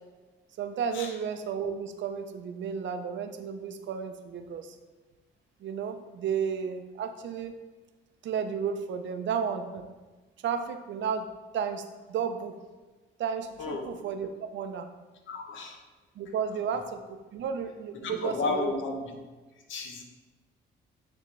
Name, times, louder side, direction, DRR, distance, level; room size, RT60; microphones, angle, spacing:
voice 1, 0.6-4.8 5.6-7.5 8.2-9.8 10.4-11.3 11.5-12.6 13.2-14.9 16.2-18.8, right 7 dB, 70° right, 7 dB, 0.6 m, -33 dB
voice 2, 15.3-15.8 16.7-16.8 18.0-19.2 19.7-20.0, left 3 dB, 80° left, 4 dB, 0.9 m, -33 dB
9.4 x 3.5 x 3.2 m, 1.3 s
cardioid pair, 90°, 20 cm